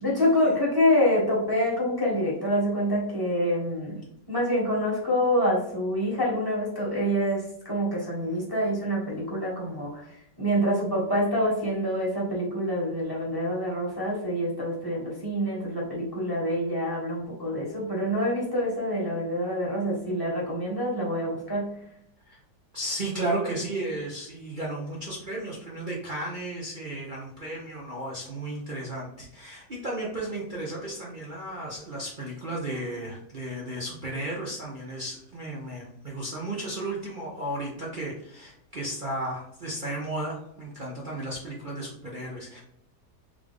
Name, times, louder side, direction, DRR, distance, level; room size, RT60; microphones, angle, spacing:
voice 1, 0.0-4.0 4.3-21.8, equal, 15° left, -5 dB, 1.4 m, -26 dB
voice 2, 22.7-42.6, right 1 dB, 40° right, -4 dB, 0.7 m, -34 dB
3.6 x 3.3 x 3.6 m, 0.74 s
omnidirectional pair, 1.9 m